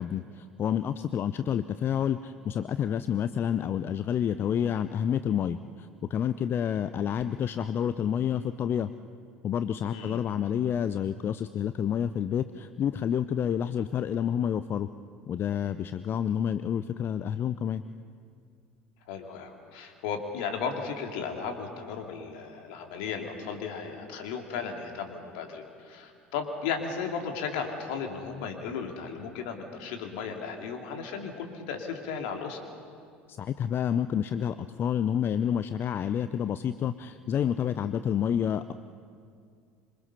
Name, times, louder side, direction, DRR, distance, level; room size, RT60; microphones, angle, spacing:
voice 1, 0.0-8.9 9.4-14.9 15.3-17.8 33.3-38.7, left 9 dB, 35° left, 12 dB, 0.6 m, -29 dB
voice 2, 9.9-10.2 19.1-32.6, left 6 dB, 60° left, 3 dB, 2.6 m, -35 dB
26.5 x 23.5 x 5.7 m, 2.3 s
figure-of-eight pair, 65°, 6 cm